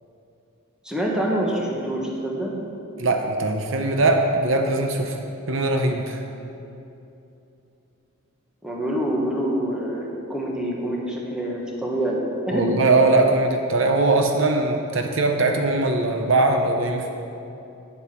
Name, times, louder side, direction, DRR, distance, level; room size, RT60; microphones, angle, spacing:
voice 1, 0.8-2.5 8.6-12.6, right 1 dB, 5° right, -3 dB, 1.3 m, -26 dB
voice 2, 3.0-5.2 5.5-6.2 12.5-17.1, right 2 dB, 65° right, 4 dB, 0.7 m, -21 dB
9.5 x 8.1 x 5.9 m, 2.8 s
head